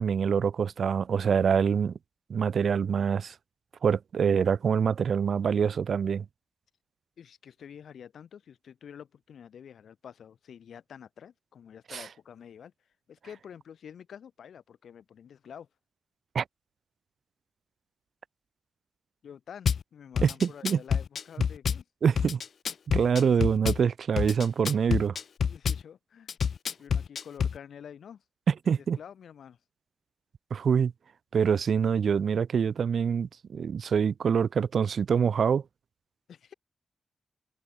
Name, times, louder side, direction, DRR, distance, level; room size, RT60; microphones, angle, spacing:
voice 1, 0.0-1.9 2.3-3.3 3.8-6.3 11.9-12.1 16.3-16.4 20.2-20.8 22.0-22.4 22.9-25.2 28.5-29.0 30.5-30.9 31.3-35.6, right 7 dB, 60° right, 2.0 m, -25 dB
voice 2, 7.2-12.7 13.1-15.7 19.2-21.8 25.5-26.3 26.8-28.2 28.7-29.6 36.3-36.5, left 8 dB, 80° left, 7.8 m, -48 dB
Drum kit / Bass drum, 19.7-19.8 20.2-21.8 22.2-23.8 24.2-25.8 26.3-27.6, left 7 dB, 60° left, 1.5 m, -27 dB
wide cardioid pair, 170°, 0 cm